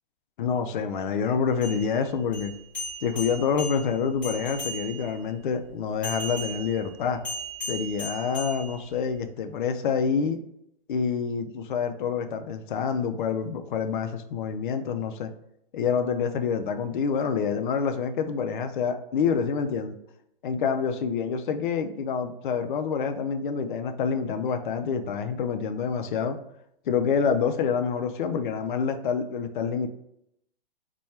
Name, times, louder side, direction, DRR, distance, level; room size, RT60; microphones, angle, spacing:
voice 1, 0.4-2.5 3.0-7.2 7.7-10.4 10.9-15.3 15.7-19.9 20.4-26.4 26.9-29.9, left 6 dB, 60° left, 7 dB, 0.4 m, -27 dB
sound 1, 1.5-5.2 6.0-9.2, equal, 5° left, 0.7 m, -37 dB
4.2 x 2.2 x 3.2 m, 0.77 s
hypercardioid pair, 165°, 29 cm